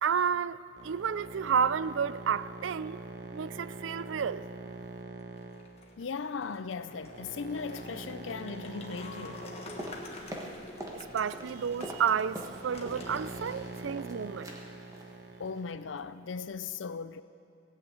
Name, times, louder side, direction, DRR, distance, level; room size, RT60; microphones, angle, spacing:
voice 1, 0.0-3.0 3.3-4.4 10.9-14.5, right 7 dB, 85° right, 0.4 m, -31 dB
sound 1, 0.7-15.9, right 2 dB, 60° right, 1.0 m, -45 dB
sound 2, 5.2-13.8, left 2 dB, 30° left, 1.4 m, -48 dB
voice 2, 6.0-9.5 15.4-17.2, left 5 dB, 85° left, 0.5 m, -38 dB
sound 3, 9.8-11.0 11.3-13.1 13.4-14.1 14.4-14.6 14.9-15.1 15.5-15.7 16.0-16.1, equal, 20° right, 1.4 m, -43 dB
18.0 x 8.2 x 8.5 m
head